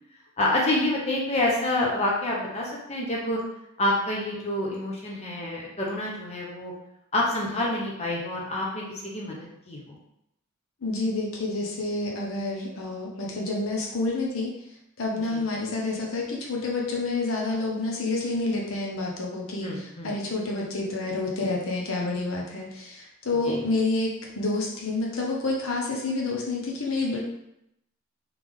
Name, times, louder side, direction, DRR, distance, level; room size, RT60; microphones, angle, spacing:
voice 1, 0.4-3.4 3.8-6.7 7.1-9.3 9.7-9.8 15.3-15.4 19.6-20.1 23.4-23.6, left 1 dB, 30° left, -4 dB, 0.8 m, -27 dB
voice 2, 10.8-14.5 15.0-27.2, left 2 dB, 65° left, -2 dB, 0.8 m, -28 dB
3.5 x 3.3 x 3.5 m, 0.82 s
head